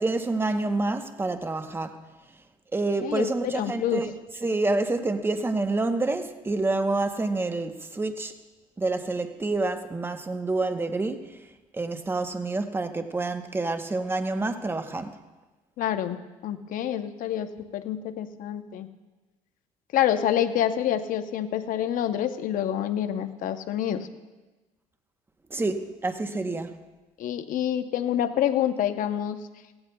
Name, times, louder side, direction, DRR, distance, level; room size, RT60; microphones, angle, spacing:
voice 1, 0.0-2.0 2.7-4.1 4.4-8.3 8.8-11.4 11.7-15.2 25.5-26.8, right 2 dB, 15° right, 0.9 m, -28 dB
voice 2, 3.0-4.0 15.8-18.9 19.9-24.1 27.2-29.4, left 10 dB, 65° left, 0.8 m, -27 dB
17.5 x 16.0 x 2.3 m
cardioid pair, 100°, 15 cm